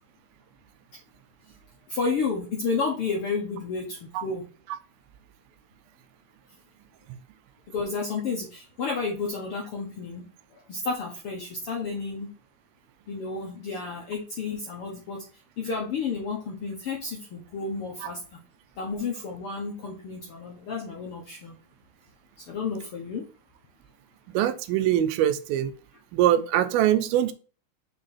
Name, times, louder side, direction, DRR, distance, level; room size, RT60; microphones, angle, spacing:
voice 1, 1.9-4.4 7.7-10.2 10.5-12.3 13.1-15.2 15.6-18.2 18.8-21.6 22.5-23.2, left 4 dB, 65° left, 1.4 m, -31 dB
voice 2, 24.3-25.7 26.1-27.3, right 12 dB, 85° right, 2.6 m, -23 dB
5.9 x 5.2 x 4.2 m
omnidirectional pair, 4.2 m